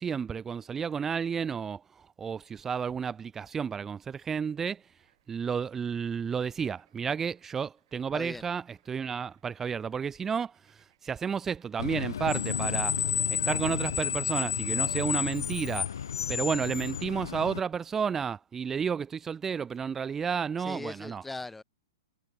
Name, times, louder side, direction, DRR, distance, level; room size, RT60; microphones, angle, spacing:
voice 1, 0.0-4.8 5.3-13.0 13.3-15.9 16.3-21.2, right 6 dB, 15° right, 0.4 m, -32 dB
Bird / Frog, 4.6-18.4, right 13 dB, 60° right, 5.3 m, -72 dB
Screech, 11.8-17.6, left 8 dB, 70° left, 0.3 m, -31 dB
voice 2, 20.6-21.6, left 2 dB, 5° left, 0.7 m, -39 dB
hypercardioid pair, 115°, 2 cm